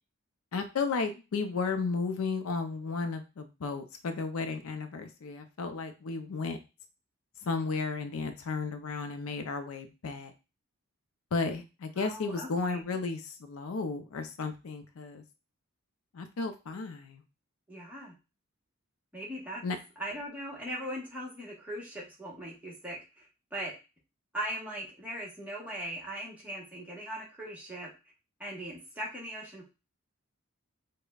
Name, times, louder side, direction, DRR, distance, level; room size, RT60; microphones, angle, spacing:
voice 1, 0.5-6.6 7.4-10.3 11.3-15.2 16.1-17.2 19.6-19.8, left 4 dB, 80° left, 7 dB, 0.5 m, -34 dB
voice 2, 12.0-12.8 17.7-18.1 19.1-19.6 20.0-23.7 24.3-27.9 28.4-29.6, right 1 dB, 5° right, -4 dB, 1.0 m, -39 dB
5.0 x 2.1 x 2.3 m, 0.29 s
head